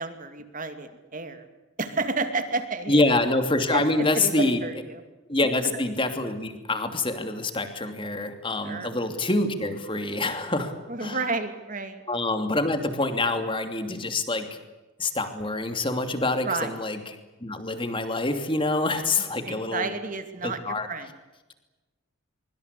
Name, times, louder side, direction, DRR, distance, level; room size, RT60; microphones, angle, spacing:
voice 1, 0.0-1.4 1.8-3.2 3.7-3.8 4.1-5.0 8.6-9.1 10.9-12.0 16.4-16.7 19.5-21.2, right 3 dB, 40° right, 8 dB, 2.6 m, -31 dB
voice 2, 2.9-4.6 5.3-10.7 11.0-11.2 12.1-14.6 15.0-17.0 17.4-19.9 20.4-20.9, left 2 dB, 25° left, 7 dB, 2.9 m, -26 dB
25.0 x 24.0 x 8.4 m, 1.1 s
head